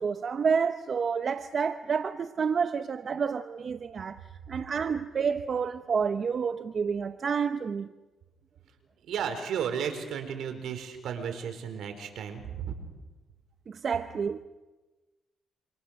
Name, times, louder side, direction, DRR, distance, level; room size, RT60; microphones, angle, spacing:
voice 1, 0.0-4.2 4.5-7.9 13.7-14.4, right 6 dB, 45° right, 1.0 m, -29 dB
voice 2, 9.0-12.8, right 7 dB, 75° right, 4.6 m, -34 dB
28.5 x 27.0 x 6.6 m
cardioid pair, 90°, 0 cm